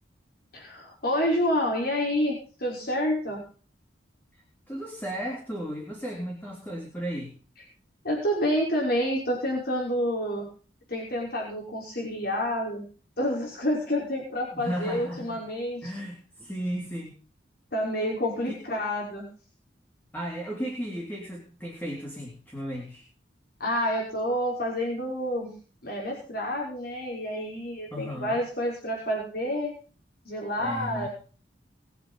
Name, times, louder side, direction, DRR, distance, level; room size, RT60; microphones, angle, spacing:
voice 1, 0.5-3.4 8.0-10.5 10.9-12.9 13.2-15.9 17.7-19.3 23.6-25.5 25.8-29.7 30.2-31.1, equal, 55° left, -2 dB, 5.6 m, -28 dB
voice 2, 4.7-7.3 14.5-15.4 15.8-17.2 20.1-23.1 27.9-28.4 30.6-31.1, equal, 10° left, -1 dB, 3.5 m, -35 dB
21.5 x 8.1 x 5.6 m, 0.39 s
head